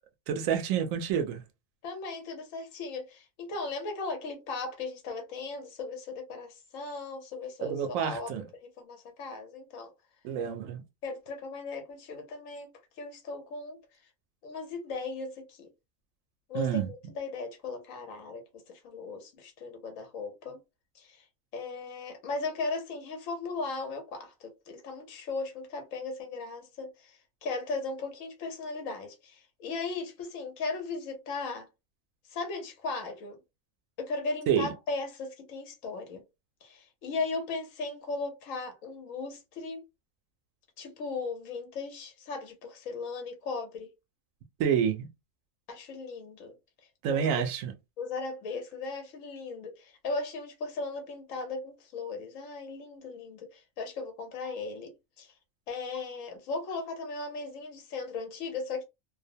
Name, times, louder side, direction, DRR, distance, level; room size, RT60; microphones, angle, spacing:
voice 1, 0.3-1.4 7.6-8.4 10.2-10.8 16.5-16.9 34.5-34.7 44.6-45.1 47.0-47.7, right 8 dB, 85° right, 1.0 m, -28 dB
voice 2, 1.8-9.9 11.0-12.7 13.0-13.8 14.4-15.7 16.5-20.6 20.9-21.3 21.5-31.7 32.3-33.4 34.0-36.2 36.6-39.8 40.8-43.9 45.7-46.6 47.1-47.4 48.0-55.3 55.7-58.8, left 3 dB, 80° left, 1.1 m, -37 dB
2.5 x 2.0 x 2.6 m
omnidirectional pair, 1.4 m